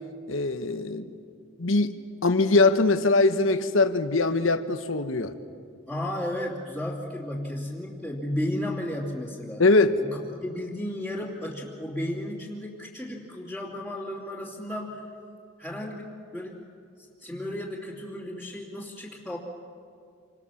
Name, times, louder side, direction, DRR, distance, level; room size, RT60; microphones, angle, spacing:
voice 1, 0.3-1.1 1.6-5.3 9.6-10.0, left 3 dB, 75° left, 9 dB, 1.1 m, -22 dB
voice 2, 5.9-9.6 10.0-15.0 15.6-16.6 17.0-19.4, left 1 dB, ahead, -7 dB, 2.8 m, -34 dB
28.0 x 25.0 x 7.2 m, 2.3 s
head